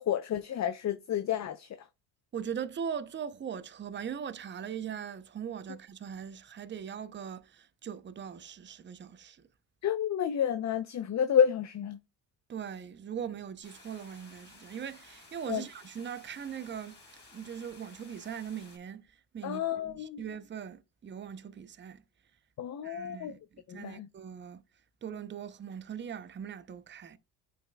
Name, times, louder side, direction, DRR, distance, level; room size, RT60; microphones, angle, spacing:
voice 1, 0.0-1.9 9.8-12.0 15.5-15.6 19.4-20.2 22.6-23.3 23.7-24.1, left 9 dB, 40° left, 0.6 m, -30 dB
voice 2, 2.3-9.4 12.5-17.0 17.3-22.0 22.8-24.6 25.0-27.2, right 8 dB, 25° right, 0.6 m, -40 dB
sound 1, 13.6-18.8, left 3 dB, 25° left, 3.4 m, -55 dB
8.4 x 5.2 x 2.2 m
supercardioid pair, 80°, 43 cm